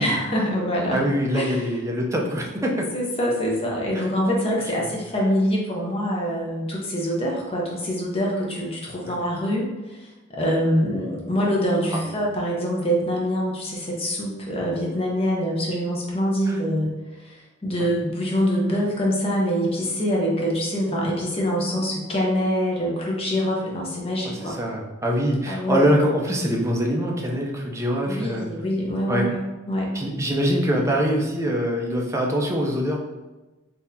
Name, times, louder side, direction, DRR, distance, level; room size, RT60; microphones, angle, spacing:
voice 1, 0.0-1.0 1.3-1.6 2.9-10.1 10.3-16.9 17.2-24.6 25.5-25.9 28.1-29.4 29.7-29.9, equal, 30° left, -3 dB, 0.7 m, -25 dB
voice 2, 0.9-2.9 3.9-4.1 4.8-4.9 9.0-9.1 11.0-11.1 11.9-12.2 16.5-16.6 17.8-17.9 24.2-28.5 29.1-29.3 29.9-33.0, equal, 15° right, 0 dB, 0.5 m, -24 dB
3.9 x 2.7 x 2.7 m, 1.1 s
head